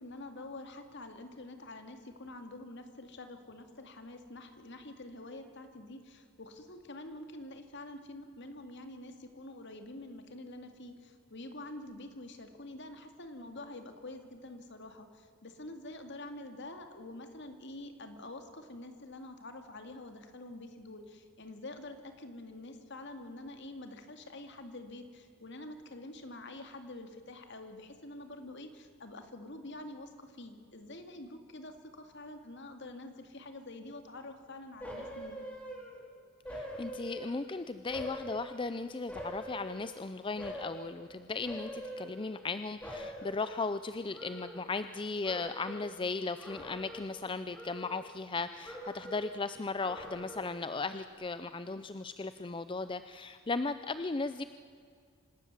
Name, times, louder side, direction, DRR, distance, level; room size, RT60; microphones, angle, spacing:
voice 1, 0.0-35.5, left 2 dB, 55° left, 7 dB, 2.2 m, -47 dB
sound 1, 34.8-36.1 36.4-37.5 37.9-40.0 40.4-40.9 41.4-42.5 42.8-45.0 45.2-45.9 46.4-47.2 47.5-48.4 48.6-49.3 49.8-50.6 51.0-51.1, equal, 5° left, 4.1 m, -44 dB
voice 2, 36.5-54.4, left 3 dB, 25° left, 12 dB, 0.5 m, -37 dB
25.5 x 13.0 x 9.4 m, 2.2 s
head